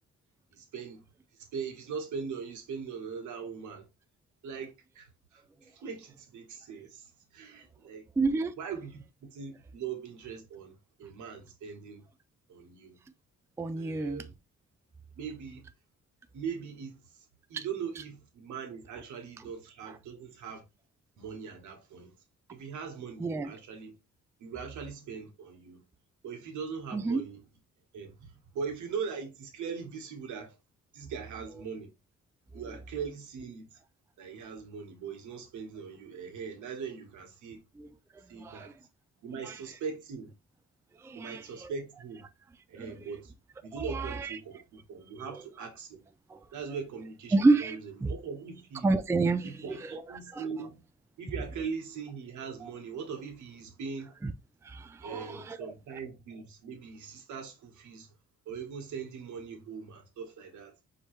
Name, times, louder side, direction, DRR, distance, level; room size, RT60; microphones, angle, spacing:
voice 1, 0.5-1.0 1.3-3.9 4.4-8.1 8.6-12.1 12.5-13.0 13.8-14.3 15.1-15.7 16.3-20.6 21.2-22.1 22.5-23.9 24.4-25.8 26.2-27.4 27.9-30.6 30.9-31.9 32.5-33.8 34.2-37.6 38.3-38.7 39.2-40.3 41.1-42.2 42.7-43.3 43.6-46.0 46.5-48.9 49.4-50.8 51.2-54.1 55.0-58.1 58.4-60.7, right 6 dB, 75° right, 1.5 m, -41 dB
voice 2, 8.2-8.5 13.6-14.2 17.5-17.7 23.2-23.5 26.9-27.2 37.8-37.9 38.4-38.7 39.4-39.6 41.0-41.7 42.8-43.0 43.7-44.4 45.2-45.4 46.3-46.5 47.3-48.1 48.8-50.4 52.6-52.7 54.2-54.3 54.6-55.6, right 3 dB, 10° right, 0.4 m, -30 dB
4.9 x 3.0 x 3.2 m
cardioid pair, 90°, 30 cm